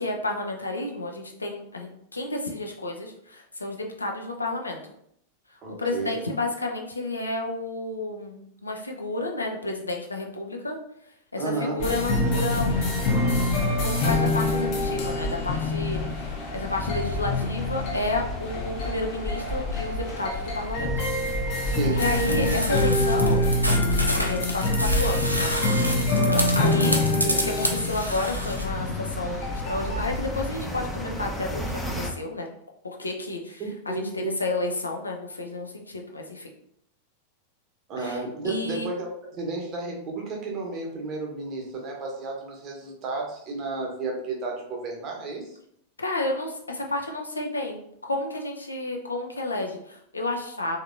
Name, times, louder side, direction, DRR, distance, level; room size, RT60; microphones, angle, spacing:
voice 1, 0.0-4.8 5.5-10.8 11.3-12.7 13.7-20.9 21.9-23.5 23.9-25.5 26.3-32.5 32.8-36.5 38.0-38.9 46.0-50.8, left 2 dB, 80° left, 1 dB, 0.5 m, -31 dB
voice 2, 5.6-6.1 11.4-11.8 21.8-22.0 33.6-34.3 37.9-45.6, right 3 dB, 35° right, 0 dB, 0.9 m, -32 dB
sound 1, 11.8-30.6, left 2 dB, 45° left, 0.7 m, -26 dB
sound 2, 12.6-32.1, equal, 5° left, 0.5 m, -39 dB
sound 3, 22.0-28.6, equal, 90° right, 0.4 m, -29 dB
3.3 x 2.8 x 2.5 m, 0.73 s
figure-of-eight pair, 90°, 0 cm